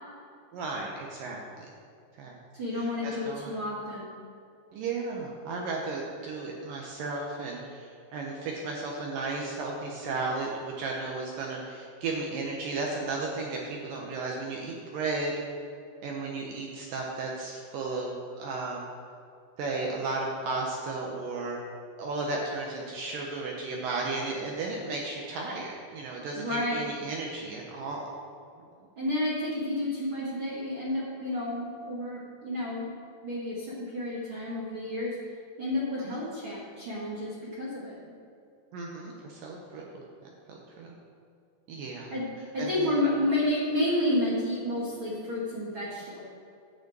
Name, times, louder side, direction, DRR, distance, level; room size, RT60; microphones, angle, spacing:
voice 1, 0.5-1.7 2.2-2.4 2.7-3.6 4.7-15.3 16.0-18.8 19.6-21.6 22.0-28.1 36.1-36.2 38.7-40.0 40.5-40.9 41.7-42.1 42.6-42.9, right 3 dB, 75° right, -1 dB, 2.0 m, -34 dB
voice 2, 2.5-4.1 26.3-26.9 29.0-32.9 33.2-35.2 35.6-38.0 42.1-42.3 42.5-46.2, left 1 dB, 45° right, -7 dB, 1.7 m, -30 dB
10.5 x 5.0 x 7.9 m, 2.5 s
omnidirectional pair, 5.0 m